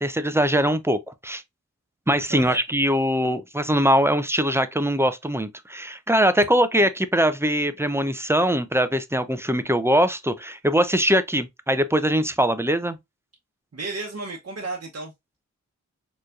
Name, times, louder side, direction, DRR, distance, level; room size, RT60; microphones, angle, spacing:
voice 1, 0.0-1.4 2.1-13.0, equal, 10° right, 0.6 m, -22 dB
voice 2, 13.7-15.1, right 3 dB, 50° right, 1.0 m, -33 dB
4.4 x 3.1 x 2.5 m
cardioid pair, 45°, 30 cm